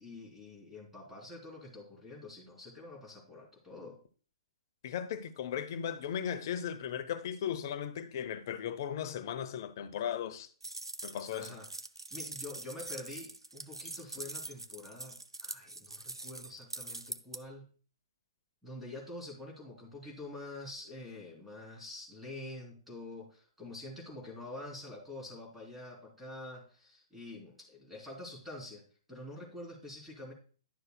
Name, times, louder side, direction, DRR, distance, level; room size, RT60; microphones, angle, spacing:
voice 1, 0.0-4.0 11.3-11.7 12.1-17.6 18.6-28.8 29.1-30.3, left 2 dB, 5° right, 3.5 m, -46 dB
voice 2, 4.8-10.5 11.0-11.6, left 9 dB, 50° left, 0.8 m, -37 dB
sound 1, 10.6-17.4, right 2 dB, 90° right, 0.5 m, -43 dB
11.5 x 6.5 x 2.2 m
figure-of-eight pair, 120°, 3 cm